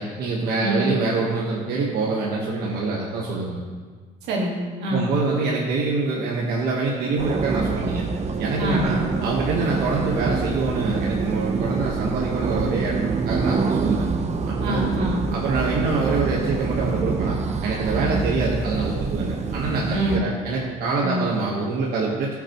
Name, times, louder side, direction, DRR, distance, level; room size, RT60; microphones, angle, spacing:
voice 1, 0.0-3.6 4.9-8.0 8.4-14.0 14.4-14.9 15.3-17.4 17.6-22.3, right 3 dB, 70° right, -4 dB, 1.4 m, -25 dB
voice 2, 0.6-0.9 4.2-5.1 8.6-9.0 14.6-15.3 17.9-18.2 19.9-20.3 21.0-21.3, right 1 dB, 90° right, -2 dB, 2.0 m, -25 dB
sound 1, 7.2-20.2, right 4 dB, 40° right, 0.7 m, -26 dB
15.0 x 5.9 x 3.1 m, 1.5 s
cardioid pair, 110°, 17 cm